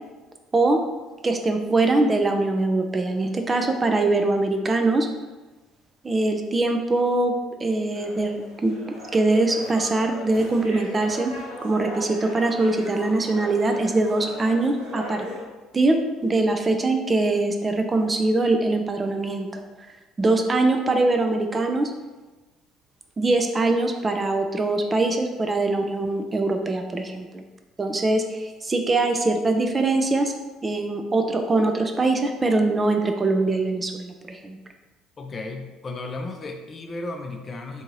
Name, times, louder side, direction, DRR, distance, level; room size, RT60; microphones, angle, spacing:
voice 1, 1.2-5.1 6.0-7.3 7.6-8.7 9.1-11.3 11.6-15.2 15.7-21.9 23.2-27.4 27.8-30.3 30.6-34.6, right 2 dB, 25° right, 5 dB, 0.3 m, -22 dB
sound 1, 7.9-15.4, left 1 dB, 90° right, 1.1 m, -38 dB
voice 2, 35.2-37.8, left 2 dB, 30° left, 4 dB, 0.5 m, -34 dB
3.5 x 2.7 x 2.9 m, 1.2 s
figure-of-eight pair, 55°, 0 cm